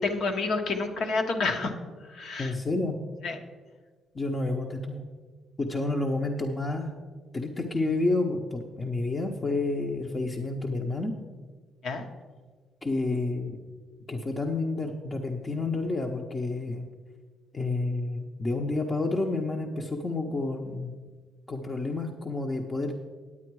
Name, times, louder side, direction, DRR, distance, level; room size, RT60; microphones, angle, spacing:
voice 1, 0.0-1.7 2.1-2.5 3.2-3.4 11.8-12.0, left 3 dB, 65° left, 5 dB, 1.2 m, -29 dB
voice 2, 2.4-3.0 4.1-5.0 5.6-6.9 7.3-11.1 12.8-13.6 14.1-16.8 17.5-21.0 21.5-23.1, left 2 dB, 25° left, 1 dB, 0.8 m, -29 dB
9.7 x 8.5 x 4.7 m, 1.5 s
cardioid pair, 90°, 0 cm